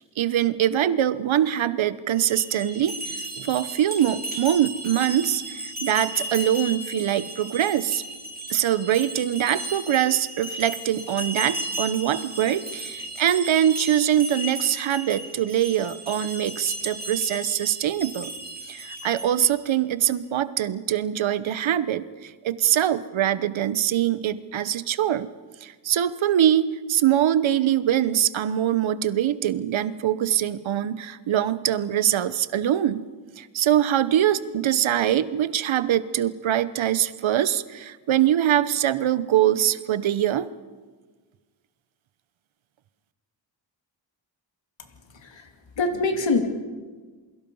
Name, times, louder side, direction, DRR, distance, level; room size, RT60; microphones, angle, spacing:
voice 1, 0.2-8.0 8.5-18.3 18.7-25.3 25.6-33.0 33.4-40.5, right 11 dB, 85° right, 15 dB, 1.0 m, -23 dB
sound 1, 2.1-19.5, right 1 dB, 20° right, 5.3 m, -35 dB
voice 2, 45.1-46.4, left 3 dB, 70° left, 4 dB, 2.8 m, -25 dB
28.0 x 22.5 x 5.5 m, 1.4 s
cardioid pair, 90°, 46 cm